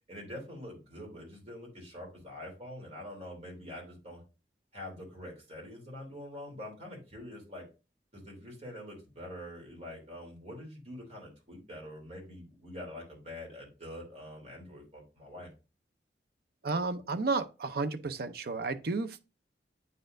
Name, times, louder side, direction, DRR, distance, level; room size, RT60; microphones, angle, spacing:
voice 1, 0.1-4.2 4.7-7.6 8.1-15.5, left 1 dB, 40° right, 3.0 m, -45 dB
voice 2, 16.6-19.2, right 3 dB, 60° right, 0.6 m, -32 dB
8.8 x 4.2 x 2.5 m
head